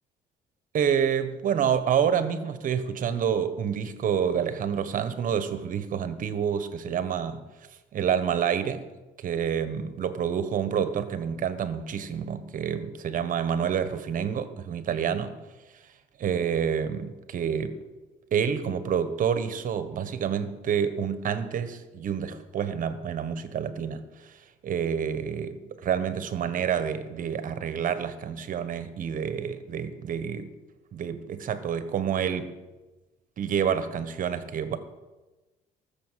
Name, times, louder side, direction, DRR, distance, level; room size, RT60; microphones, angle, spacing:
voice 1, 0.7-7.4 7.9-8.8 9.2-15.3 16.2-17.8 18.3-30.5 30.9-32.5 33.4-34.8, right 8 dB, 50° right, 1.3 m, -28 dB
19.0 x 7.1 x 7.5 m
cardioid pair, 110°, 17 cm